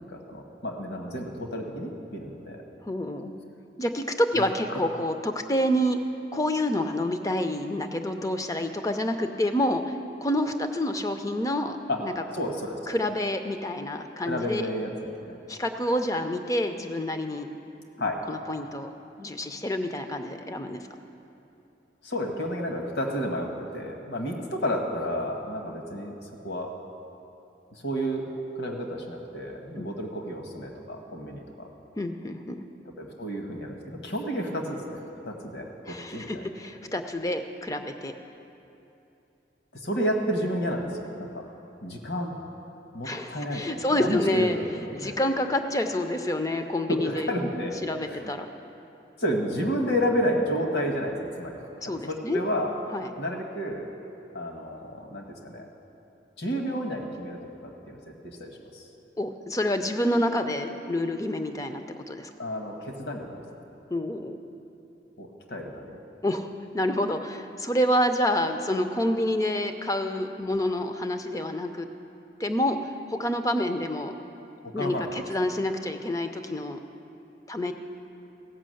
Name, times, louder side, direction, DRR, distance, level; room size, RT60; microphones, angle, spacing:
voice 1, 0.0-2.6 4.4-4.5 4.7-4.9 11.9-12.0 12.3-12.8 14.3-14.9 15.3-15.4 18.0-18.2 22.0-26.2 26.4-26.7 27.7-31.7 33.0-35.0 35.2-36.4 39.7-41.5 41.8-42.3 42.9-45.2 46.9-47.8 48.1-48.3 49.2-52.7 53.2-53.9 54.3-55.7 56.4-58.9 62.4-63.6 65.2-66.0 74.8-75.1, equal, 70° left, 2 dB, 1.4 m, -31 dB
voice 2, 2.8-3.3 3.8-6.0 6.3-10.0 10.2-11.8 12.0-12.1 12.9-14.7 15.5-17.5 18.3-18.9 19.2-20.8 29.8-29.9 32.0-32.6 35.9-38.1 43.0-44.6 44.9-48.5 51.8-52.4 52.9-53.1 59.2-62.3 63.9-64.4 66.2-66.5 66.7-71.9 72.4-74.1 74.7-76.8 77.5-77.7, left 1 dB, 20° left, 7 dB, 0.5 m, -28 dB
16.0 x 6.0 x 7.7 m, 2.8 s
head